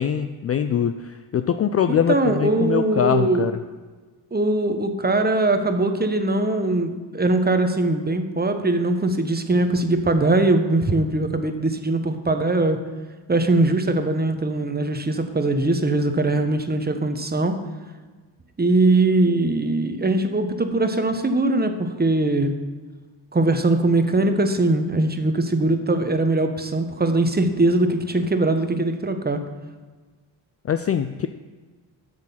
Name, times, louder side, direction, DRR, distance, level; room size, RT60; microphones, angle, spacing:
voice 1, 0.0-3.5 30.6-31.3, left 8 dB, 30° left, 9 dB, 0.4 m, -23 dB
voice 2, 2.1-3.5 4.3-12.8 13.3-17.6 18.6-22.5 23.3-29.4, right 2 dB, 20° right, 7 dB, 1.0 m, -21 dB
8.1 x 6.4 x 5.7 m, 1.4 s
hypercardioid pair, 50°, 48 cm